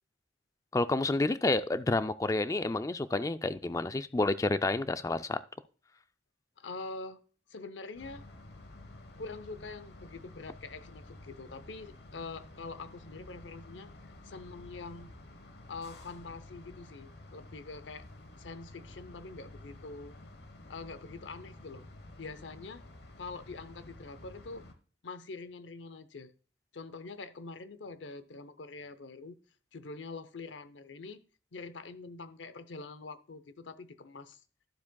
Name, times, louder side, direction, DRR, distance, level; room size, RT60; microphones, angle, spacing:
voice 1, 0.7-5.4, left 2 dB, 15° left, 0.3 m, -29 dB
voice 2, 6.6-7.2 7.5-8.2 9.2-13.9 14.2-15.1 15.7-18.1 18.4-20.1 20.7-21.8 22.2-22.8 23.2-24.6 25.0-26.3 26.7-29.4 29.7-31.2 31.5-34.4, left 3 dB, 80° left, 0.7 m, -44 dB
sound 1, 7.9-24.7, left 2 dB, 60° left, 1.1 m, -51 dB
12.0 x 7.2 x 2.2 m
head